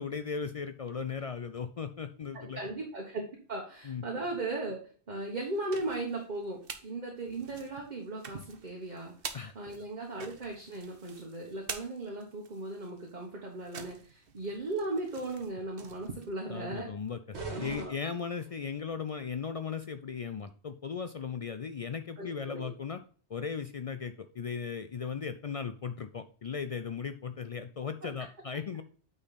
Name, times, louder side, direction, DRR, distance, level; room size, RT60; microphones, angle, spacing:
voice 1, 0.0-2.6 3.8-4.0 9.3-9.5 16.5-23.0 23.3-28.8, left 6 dB, 65° left, 9 dB, 0.3 m, -37 dB
voice 2, 2.3-3.2 3.5-9.1 9.5-16.9 17.5-17.9 22.2-22.7, right 2 dB, 40° right, -1 dB, 1.4 m, -37 dB
sound 1, 5.4-6.9 7.3-16.8, right 6 dB, 60° right, 1.0 m, -47 dB
sound 2, 17.3-18.8, right 3 dB, 75° right, 1.8 m, -42 dB
8.8 x 4.0 x 4.0 m, 0.42 s
omnidirectional pair, 1.1 m